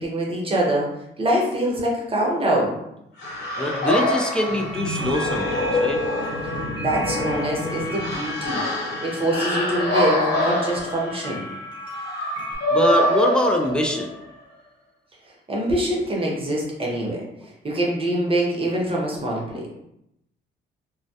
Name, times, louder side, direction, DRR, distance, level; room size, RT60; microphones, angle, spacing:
voice 1, 0.0-2.8 6.8-8.6 9.0-11.5 15.5-17.2 17.6-19.7, right 1 dB, 30° right, -2 dB, 0.7 m, -24 dB
sound 1, 3.2-14.2, left 1 dB, 65° left, 1.0 m, -25 dB
voice 2, 3.6-6.0 12.7-14.1 19.5-19.7, left 1 dB, 5° left, 2 dB, 0.4 m, -24 dB
sound 2, 3.9-12.6, left 1 dB, 25° left, 0.8 m, -35 dB
2.2 x 2.1 x 2.7 m, 0.81 s
cardioid pair, 90°, 20 cm